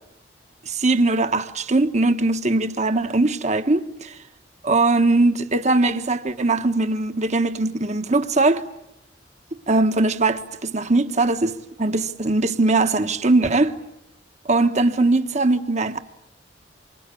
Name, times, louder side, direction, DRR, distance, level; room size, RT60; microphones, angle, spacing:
voice 1, 0.6-4.1 4.6-8.7 9.7-13.8 14.5-16.0, right 2 dB, 40° right, 1.4 m, -20 dB
28.0 x 25.0 x 8.5 m
head